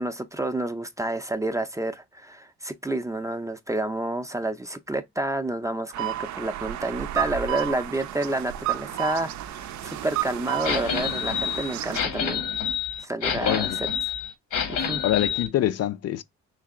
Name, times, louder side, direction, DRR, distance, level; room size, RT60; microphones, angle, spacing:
voice 1, 0.0-12.4 13.0-13.9 14.7-15.0, right 1 dB, 10° right, 0.4 m, -29 dB
sound 1, 5.9-12.0, right 13 dB, 70° right, 0.5 m, -32 dB
sound 2, 10.6-15.5, left 7 dB, 80° left, 1.1 m, -28 dB
voice 2, 13.4-13.8 15.0-16.2, left 12 dB, 55° left, 0.4 m, -25 dB
3.2 x 2.9 x 3.6 m
cardioid pair, 90°, 30 cm